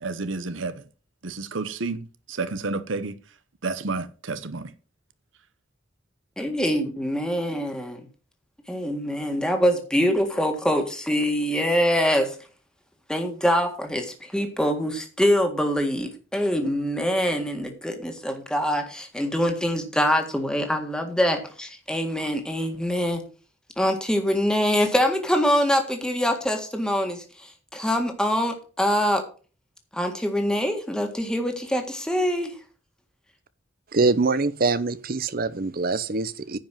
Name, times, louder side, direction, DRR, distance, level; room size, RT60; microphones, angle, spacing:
voice 1, 0.0-0.8 1.2-3.2 3.6-4.7, right 3 dB, 80° right, 0.9 m, -30 dB
voice 2, 6.4-8.0 8.7-12.4 13.1-23.2 23.8-29.2 29.9-32.5, equal, 5° left, 1.8 m, -24 dB
voice 3, 33.9-36.6, right 3 dB, 50° right, 0.8 m, -24 dB
10.0 x 5.4 x 7.4 m
head